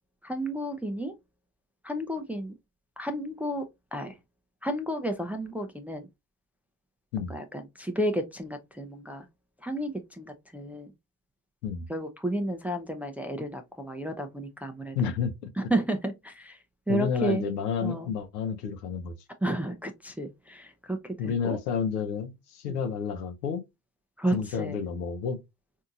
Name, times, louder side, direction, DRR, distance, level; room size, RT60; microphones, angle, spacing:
voice 1, 0.2-1.1 1.8-2.5 3.0-4.1 4.6-6.1 7.2-9.3 9.6-10.9 11.9-15.1 15.6-16.6 16.9-17.4 17.8-18.1 19.4-21.6 22.7-22.8 24.2-24.8, right 1 dB, 5° right, 0.4 m, -32 dB
voice 2, 14.9-15.3 16.9-19.1 21.2-23.6 24.3-25.4, left 6 dB, 80° left, 0.8 m, -30 dB
4.3 x 2.8 x 2.4 m
hypercardioid pair, 70°, 47 cm